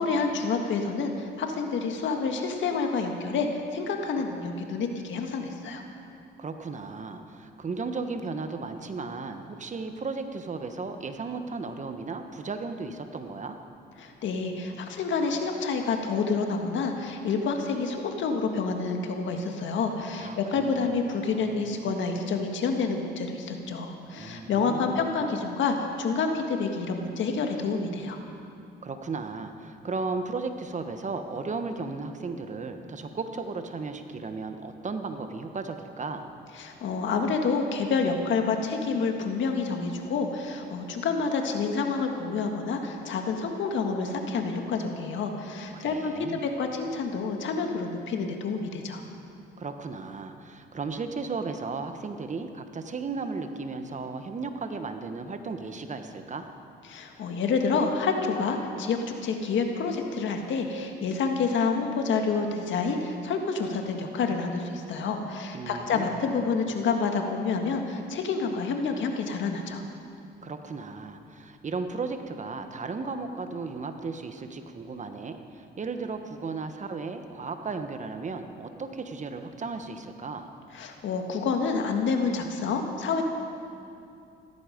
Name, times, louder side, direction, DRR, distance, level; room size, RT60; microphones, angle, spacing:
voice 1, 0.0-5.8 14.0-28.2 36.6-49.0 56.9-69.8 80.7-83.2, left 4 dB, 70° left, 4 dB, 1.7 m, -28 dB
voice 2, 6.4-13.6 20.2-21.7 24.2-25.0 28.8-36.3 45.7-46.4 49.6-56.5 65.5-66.3 70.4-80.5, right 4 dB, 40° right, 7 dB, 1.2 m, -35 dB
16.0 x 14.0 x 5.2 m, 2.6 s
cardioid pair, 90°, 20 cm